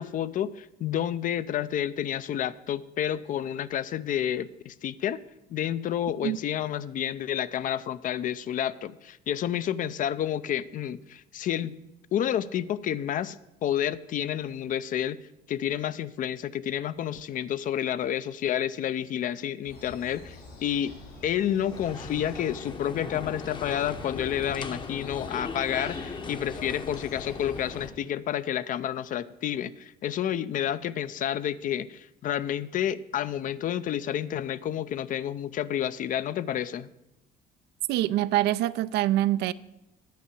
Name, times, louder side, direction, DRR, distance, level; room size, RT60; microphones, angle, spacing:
voice 1, 0.0-5.2 5.5-11.7 12.1-15.2 15.5-20.9 21.2-36.9, left 10 dB, 50° left, 0.5 m, -30 dB
sound 1, 19.6-27.9, left 2 dB, 75° left, 4.8 m, -48 dB
sound 2, 21.7-27.9, left 4 dB, 30° left, 0.8 m, -38 dB
voice 2, 37.9-39.5, right 14 dB, 80° right, 0.4 m, -25 dB
9.5 x 5.6 x 8.4 m
cardioid pair, 110°, 17 cm